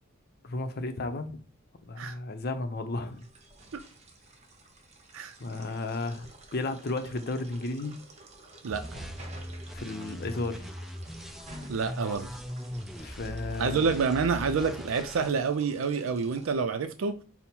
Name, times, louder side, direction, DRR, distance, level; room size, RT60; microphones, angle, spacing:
voice 1, 0.4-1.4 1.8-3.3 5.4-8.0 9.7-10.7 13.0-13.9, left 2 dB, 50° left, 0.6 m, -34 dB
sound 1, 3.0-16.5, right 2 dB, 35° right, 0.8 m, -51 dB
sound 2, 8.7-15.3, equal, ahead, 0.4 m, -40 dB
voice 2, 11.7-12.3 13.6-17.2, right 5 dB, 85° right, 0.4 m, -28 dB
5.4 x 2.1 x 4.4 m
head